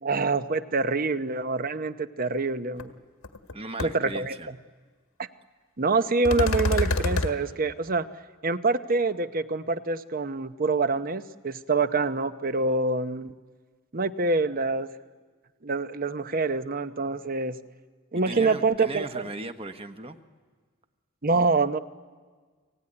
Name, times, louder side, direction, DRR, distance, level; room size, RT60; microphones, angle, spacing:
voice 1, 0.0-2.9 3.8-4.6 5.2-5.3 5.8-8.1 8.4-13.3 13.9-14.9 15.6-17.6 18.1-19.3 21.2-21.8, right 3 dB, 45° right, 12 dB, 0.8 m, -26 dB
sound 1, 2.8-2.9 3.2-3.5 3.8-3.9 6.3-7.3, left 2 dB, 85° left, 1.7 m, -25 dB
voice 2, 3.5-4.5 18.1-20.2, right 2 dB, 30° right, 8 dB, 1.2 m, -37 dB
30.0 x 19.5 x 9.9 m, 1.5 s
head